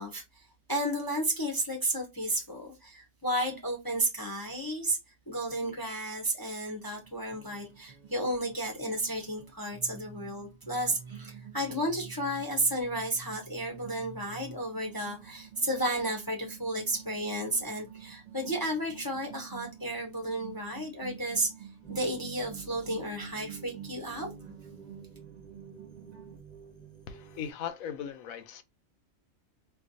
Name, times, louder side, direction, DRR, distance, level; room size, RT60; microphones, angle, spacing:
voice 1, 0.0-5.0 5.3-21.5 21.9-24.3, right 1 dB, 25° left, 0.6 m, -32 dB
sound 1, 7.0-26.4, right 7 dB, 40° right, 0.6 m, -49 dB
sound 2, 21.8-27.5, right 6 dB, 10° right, 0.8 m, -50 dB
voice 2, 27.1-28.6, left 8 dB, 85° left, 1.0 m, -38 dB
4.3 x 2.3 x 2.6 m
omnidirectional pair, 1.4 m